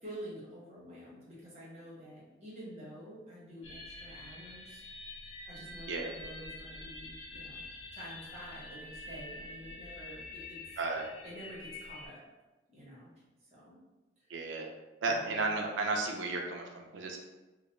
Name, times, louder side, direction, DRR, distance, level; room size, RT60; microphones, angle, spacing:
voice 1, 0.0-4.8 5.2-7.7 7.9-10.6 11.2-12.2 12.7-13.1 13.4-13.7 14.2-14.3 15.0-15.5, equal, 35° right, -7 dB, 0.9 m, -48 dB
sound 1, 3.6-12.1, left 2 dB, 85° left, 0.6 m, -47 dB
voice 2, 14.3-14.7 15.0-17.2, right 3 dB, 85° right, 2 dB, 0.4 m, -33 dB
2.2 x 2.2 x 2.9 m, 1.1 s
head